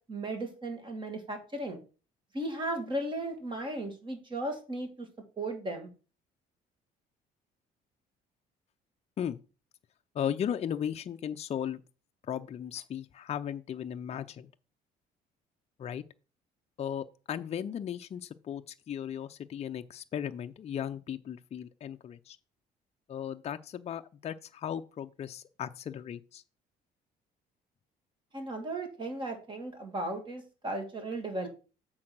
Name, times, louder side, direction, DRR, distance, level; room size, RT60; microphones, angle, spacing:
voice 1, 0.1-1.8 2.3-4.9 5.4-5.9 28.3-31.5, right 1 dB, 30° right, 2.3 m, -36 dB
voice 2, 10.1-11.8 12.3-14.5 15.8-16.0 16.8-22.4 23.1-26.4, left 9 dB, 40° left, 0.5 m, -36 dB
7.6 x 3.9 x 6.0 m
cardioid pair, 110°, 17 cm